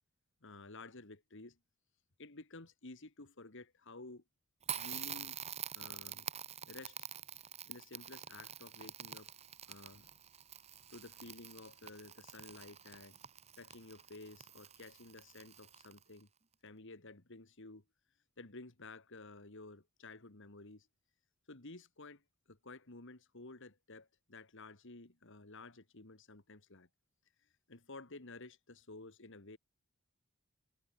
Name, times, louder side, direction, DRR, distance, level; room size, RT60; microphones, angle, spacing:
voice 1, 0.4-1.6 2.2-4.2 4.8-5.4 5.7-6.3 6.7-7.0 7.7-9.3 9.7-10.1 10.9-13.2 13.6-16.3 16.6-17.8 18.4-20.9 21.5-22.2 22.5-26.9 27.4-29.6, left 2 dB, 60° left, 2.1 m, -53 dB
Crackle, 4.6-16.2, right 9 dB, 30° right, 1.1 m, -47 dB
head